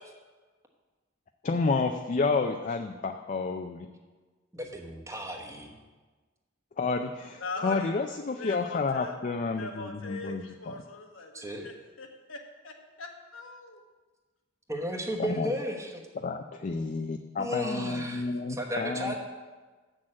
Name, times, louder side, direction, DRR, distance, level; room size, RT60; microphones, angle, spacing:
voice 1, 1.4-3.9 6.8-10.7 15.2-15.5 16.2-19.2, left 4 dB, 40° left, 6 dB, 0.4 m, -30 dB
voice 2, 4.5-5.7 11.3-11.7 14.7-16.0 17.4-19.2, equal, 15° right, 2 dB, 1.1 m, -34 dB
voice 3, 7.4-9.2 9.5-12.4 12.6-13.8, left 3 dB, 85° left, 3 dB, 1.2 m, -41 dB
7.5 x 6.3 x 7.5 m, 1.3 s
head